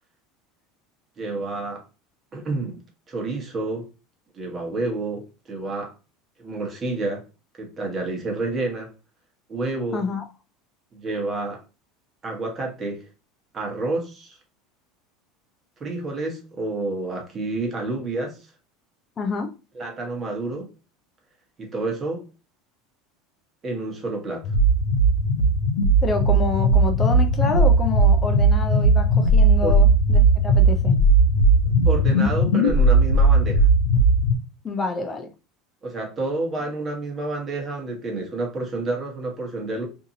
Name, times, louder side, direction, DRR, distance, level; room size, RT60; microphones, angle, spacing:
voice 1, 1.2-1.8 2.3-2.8 3.1-3.9 4.3-5.9 6.4-7.2 7.6-8.9 9.5-10.0 10.9-11.6 12.2-13.1 13.5-14.4 15.8-18.5 19.7-20.7 21.6-22.2 23.6-24.5 29.6-29.8 31.8-33.7 35.8-39.9, right 2 dB, 30° right, 1.1 m, -29 dB
voice 2, 9.9-10.2 19.2-19.5 26.0-31.0 34.6-35.3, left 3 dB, 30° left, 0.5 m, -28 dB
sound 1, 24.4-34.3, right 2 dB, 80° left, 0.6 m, -17 dB
2.7 x 2.5 x 2.7 m
supercardioid pair, 100°, 0 cm